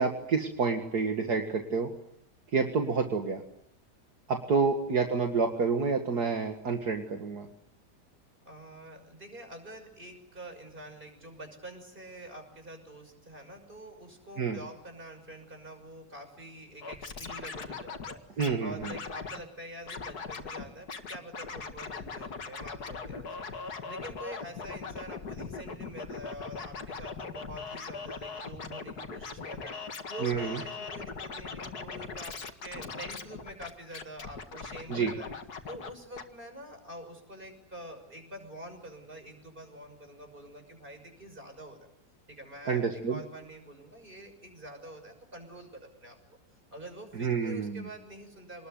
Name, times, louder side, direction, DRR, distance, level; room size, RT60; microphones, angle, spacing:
voice 1, 0.0-1.9 2.5-3.4 4.3-7.5 14.4-14.6 18.4-18.9 30.2-30.6 34.9-35.1 42.7-43.2 47.2-47.9, right 5 dB, 65° right, 3 dB, 2.4 m, -28 dB
voice 2, 8.4-23.5 23.9-29.8 30.1-35.3 35.7-41.8 42.3-46.2 46.7-48.7, right 1 dB, 30° right, 6 dB, 6.5 m, -46 dB
Scratching (performance technique), 16.8-18.5 18.8-19.4 19.9-20.6 20.9-35.9 36.2-36.3, left 4 dB, 65° left, 2.4 m, -40 dB
27.5 x 20.5 x 9.3 m, 0.78 s
omnidirectional pair, 1.8 m